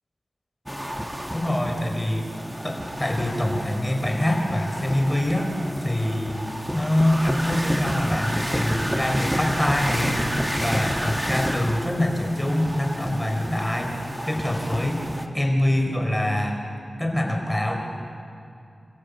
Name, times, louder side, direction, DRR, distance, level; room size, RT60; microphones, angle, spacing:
sound 1, 0.7-15.3, equal, 5° right, 1.9 m, -30 dB
voice 1, 1.3-2.2 2.6-5.5 5.8-6.4 6.7-10.3 10.6-13.9 14.3-15.0 15.3-16.6 17.0-17.7, left 1 dB, 10° left, 2 dB, 4.8 m, -24 dB
29.0 x 15.0 x 8.4 m, 2.4 s
wide cardioid pair, 60°, 0 cm